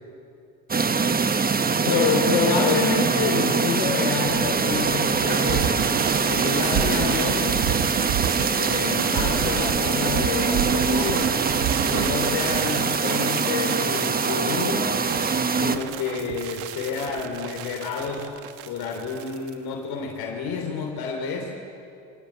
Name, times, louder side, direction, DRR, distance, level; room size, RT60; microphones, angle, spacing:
sound 1, 0.7-15.8, right 5 dB, 25° right, 1.2 m, -23 dB
voice 1, 1.8-5.8 6.3-7.7 8.5-11.4 11.9-14.9 15.5-18.3 18.7-21.5, left 5 dB, 70° left, 1 dB, 3.4 m, -28 dB
sound 2, 4.3-19.5, right 10 dB, 75° right, 1.8 m, -30 dB
25.0 x 18.0 x 10.0 m, 2.6 s
supercardioid pair, 75°, 39 cm